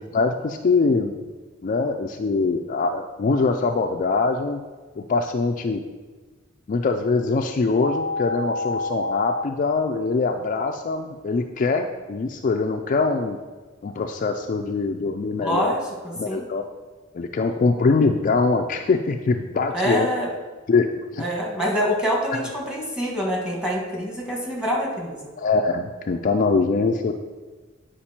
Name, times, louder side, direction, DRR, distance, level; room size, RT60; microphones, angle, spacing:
voice 1, 0.1-1.3 1.6-4.6 5.0-5.8 6.7-13.4 13.8-15.8 16.2-16.6 17.1-20.1 20.7-21.2 22.3-22.5 25.4-27.1, left 4 dB, 40° left, 4 dB, 0.4 m, -23 dB
sound 1, 7.8-9.4, left 2 dB, 60° right, 0.8 m, -27 dB
voice 2, 15.4-16.4 19.7-20.3 21.2-25.2, equal, 5° right, -2 dB, 1.4 m, -25 dB
8.7 x 5.1 x 4.3 m, 1.4 s
head